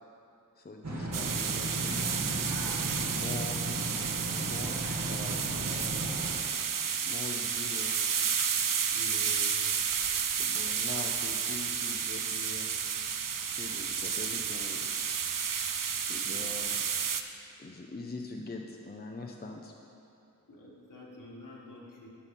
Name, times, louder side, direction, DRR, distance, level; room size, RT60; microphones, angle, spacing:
voice 1, 0.6-2.5 3.0-3.6 4.4-6.1 7.0-8.3 10.4-12.7 13.4-15.2 16.1-16.8 17.6-19.7, left 2 dB, 25° left, 1 dB, 0.6 m, -43 dB
sound 1, 0.8-6.3, right 1 dB, 50° right, 1.4 m, -35 dB
sound 2, 1.1-17.2, right 7 dB, 65° right, 0.5 m, -31 dB
voice 2, 8.9-9.6 16.3-16.4 20.5-22.1, equal, 65° left, -4 dB, 1.8 m, -47 dB
10.0 x 5.9 x 5.3 m, 2.8 s
wide cardioid pair, 45°, 35 cm